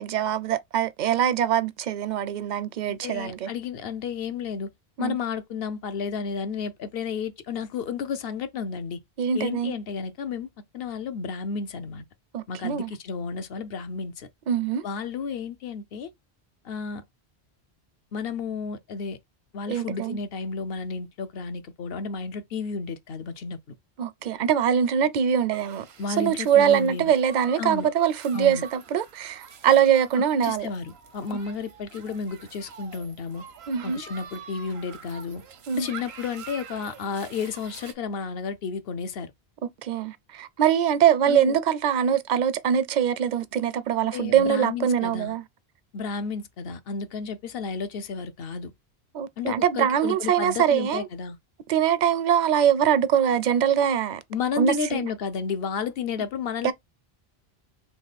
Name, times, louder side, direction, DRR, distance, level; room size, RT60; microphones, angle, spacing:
voice 1, 0.0-3.5 5.0-5.2 9.2-9.7 12.3-12.9 14.5-14.8 19.7-20.2 24.0-25.9 26.2-30.7 33.7-34.0 35.7-35.9 39.8-45.4 49.1-51.1 51.7-54.2 54.6-55.1 56.6-56.7, right 9 dB, 55° right, 0.6 m, -23 dB
voice 2, 2.9-4.7 5.0-9.0 9.3-10.5 10.7-12.0 12.5-14.3 14.8-16.1 16.6-17.0 18.1-19.2 19.5-23.6 26.0-27.1 27.5-27.9 28.3-28.6 30.4-33.4 33.8-35.4 35.7-39.3 41.3-41.6 44.1-45.4 45.9-48.7 49.4-51.4 54.3-56.7, left 5 dB, 65° left, 0.8 m, -32 dB
sound 1, 25.5-37.9, right 6 dB, 75° right, 1.0 m, -46 dB
3.6 x 3.1 x 4.0 m
omnidirectional pair, 1.1 m